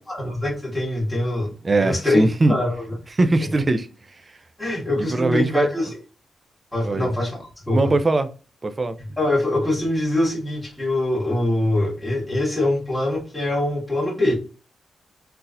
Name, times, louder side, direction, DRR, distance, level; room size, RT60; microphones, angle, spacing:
voice 1, 0.1-1.5 1.8-2.9 4.6-6.0 6.7-7.9 9.0-14.3, left 1 dB, 5° left, 1.5 m, -23 dB
voice 2, 1.6-2.6 3.1-3.9 5.1-5.7 6.8-7.1 7.7-8.3 8.6-8.9, right 2 dB, 25° right, 0.4 m, -20 dB
3.9 x 2.7 x 2.4 m
wide cardioid pair, 150°, 0 cm